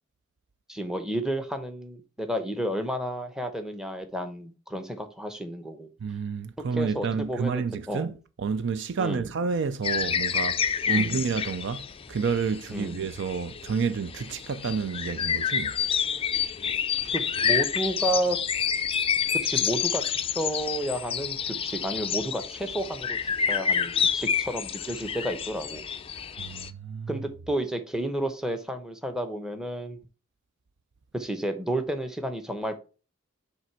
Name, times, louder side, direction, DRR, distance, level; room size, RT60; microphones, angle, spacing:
voice 1, 0.7-5.9 6.8-8.1 9.0-9.3 10.9-11.2 12.7-13.0 17.1-18.4 19.3-25.8 27.1-30.0 31.1-32.8, right 1 dB, 5° right, 0.8 m, -31 dB
voice 2, 6.0-15.8 26.4-27.2, right 5 dB, 60° right, 0.4 m, -30 dB
sound 1, 9.8-26.7, left 7 dB, 25° left, 0.4 m, -29 dB
7.6 x 3.4 x 4.5 m
head